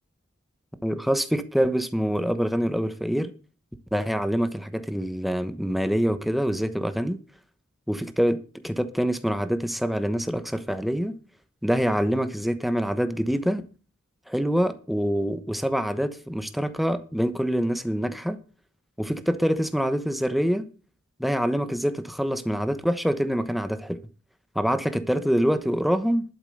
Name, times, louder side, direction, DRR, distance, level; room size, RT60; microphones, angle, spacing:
voice 1, 0.8-3.3 3.9-7.2 7.9-11.1 11.6-13.6 14.3-18.4 19.0-20.7 21.2-24.0 24.5-26.2, equal, ahead, 1.1 m, -25 dB
12.0 x 7.5 x 6.6 m
head